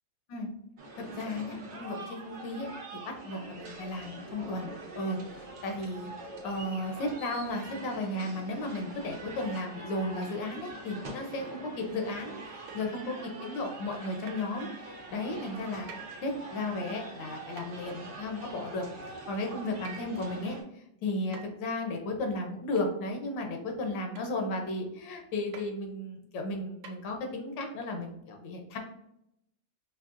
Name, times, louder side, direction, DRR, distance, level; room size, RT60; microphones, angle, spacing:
sound 1, 0.8-20.6, right 2 dB, 50° right, 0.9 m, -44 dB
voice 1, 1.0-2.7 3.0-6.1 6.4-15.9 16.2-18.9 19.3-28.8, left 2 dB, 80° left, 3 dB, 1.5 m, -34 dB
sound 2, 12.7-13.0 14.3-14.5 15.9-16.1 17.6-17.8 19.8-20.2 21.3-21.6 22.8-22.9 24.1-24.4 25.5-25.7 26.8-26.9, right 6 dB, 75° right, 0.7 m, -47 dB
4.7 x 3.2 x 2.4 m, 0.79 s
omnidirectional pair, 2.0 m